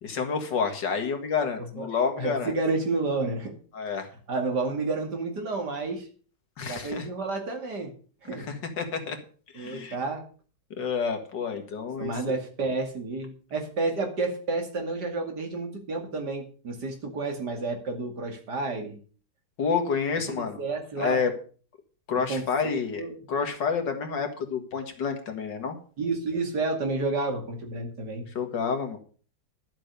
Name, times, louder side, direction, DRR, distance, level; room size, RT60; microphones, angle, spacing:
voice 1, 0.0-2.5 3.7-4.1 6.6-7.1 8.3-9.2 9.5-10.0 10.8-12.2 19.6-20.6 21.0-21.3 22.1-25.8 28.4-29.0, left 5 dB, 80° left, 5 dB, 2.5 m, -29 dB
voice 2, 2.2-3.5 4.3-6.1 6.7-7.9 8.2-8.5 9.5-10.2 12.0-19.0 20.4-21.2 22.3-23.2 26.0-28.3, right 3 dB, 65° right, 4 dB, 2.9 m, -30 dB
12.0 x 7.5 x 6.8 m, 0.41 s
omnidirectional pair, 1.9 m